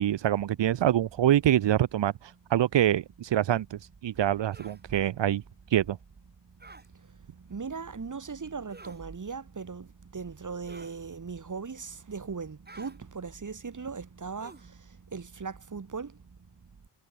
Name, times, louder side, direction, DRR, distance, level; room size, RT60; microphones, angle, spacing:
voice 1, 0.0-5.4 5.7-6.0, right 11 dB, 85° right, 1.2 m, -25 dB
sound 1, 4.5-4.8 6.6-6.9 8.7-9.0 10.7-11.0 12.6-13.0 14.4-14.7, right 3 dB, 20° right, 4.7 m, -49 dB
voice 2, 7.5-9.9 10.1-14.5 15.1-16.1, right 5 dB, 45° right, 6.5 m, -38 dB
cardioid pair, 85°, 43 cm